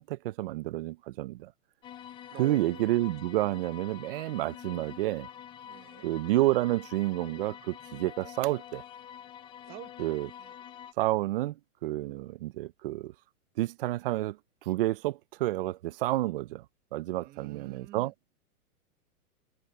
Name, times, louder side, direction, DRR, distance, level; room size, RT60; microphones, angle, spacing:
voice 1, 0.0-1.5 2.4-5.3 6.0-8.8 10.0-10.3 11.0-11.6 11.8-13.1 13.6-14.4 14.7-16.6 16.9-18.1, right 16 dB, 40° right, 0.5 m, -29 dB
sound 1, 1.8-10.9, left 10 dB, 10° left, 0.6 m, -47 dB
voice 2, 2.3-2.9 5.6-6.1 9.6-10.5 17.1-18.1, right 15 dB, 20° right, 1.2 m, -48 dB
hypercardioid pair, 155°, 45 cm